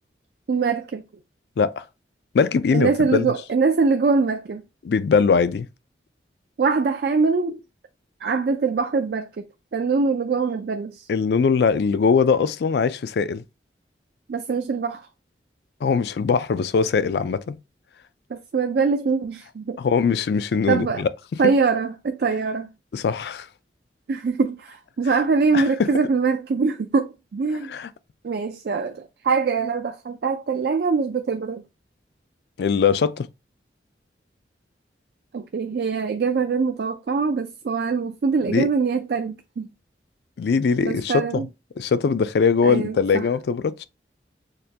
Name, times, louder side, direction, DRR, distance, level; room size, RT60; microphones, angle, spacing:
voice 1, 0.5-1.0 2.7-4.6 6.6-7.6 8.2-9.5 9.7-11.1 14.3-15.1 18.3-19.8 20.7-21.1 21.4-22.7 24.1-27.7 28.2-31.6 35.3-39.7 40.8-41.5 42.6-43.3, right 4 dB, 60° right, 0.4 m, -23 dB
voice 2, 2.3-3.3 4.8-5.7 11.1-13.4 15.8-17.6 19.8-21.1 22.9-23.5 25.5-25.9 27.7-27.9 32.6-33.3 38.5-38.7 40.4-41.5 41.8-43.8, left 5 dB, 65° left, 0.3 m, -21 dB
6.5 x 2.2 x 2.7 m
head